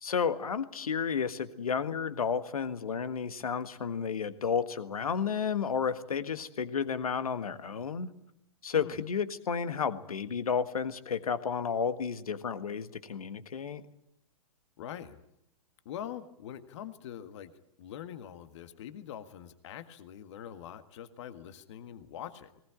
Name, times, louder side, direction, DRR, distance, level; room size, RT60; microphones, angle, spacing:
voice 1, 0.0-8.1 8.6-13.8, left 6 dB, 70° left, 11 dB, 1.6 m, -32 dB
voice 2, 14.8-15.2 15.9-17.5 17.8-22.6, left 10 dB, 50° left, 10 dB, 1.7 m, -44 dB
20.0 x 19.5 x 8.8 m, 0.79 s
figure-of-eight pair, 115°, 19 cm